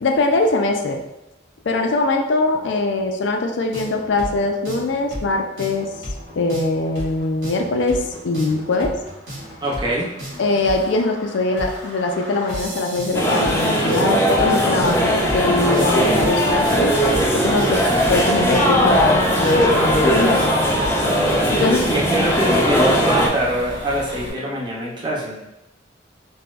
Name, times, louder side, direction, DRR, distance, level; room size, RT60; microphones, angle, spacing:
voice 1, 0.0-1.0 1.6-5.9 6.4-8.9 10.4-17.8 18.1-20.5 21.5-21.8, left 2 dB, 75° left, 3 dB, 0.4 m, -22 dB
sound 1, 3.7-21.1, equal, 85° right, 1.3 m, -34 dB
voice 2, 9.6-10.1 21.6-25.4, right 1 dB, 25° right, -4 dB, 0.7 m, -24 dB
sound 2, 13.1-23.3, equal, 15° left, 0.4 m, -18 dB
sound 3, 14.8-24.3, right 1 dB, 65° right, 0.7 m, -34 dB
4.1 x 2.2 x 2.3 m, 0.93 s
head